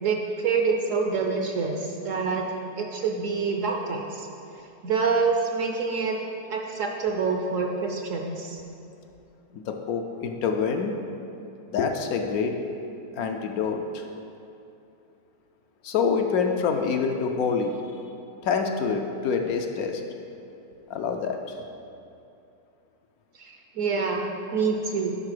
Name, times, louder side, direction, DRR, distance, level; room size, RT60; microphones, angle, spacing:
voice 1, 0.0-2.5 2.8-4.3 4.8-6.2 6.5-8.6 23.4-25.2, right 4 dB, 65° right, 2 dB, 0.9 m, -26 dB
voice 2, 9.5-10.9 11.7-12.6 13.1-14.1 15.8-17.8 18.4-20.0 20.9-21.6, left 5 dB, 70° left, 4 dB, 1.0 m, -26 dB
10.5 x 4.5 x 4.9 m, 2.7 s
omnidirectional pair, 1.7 m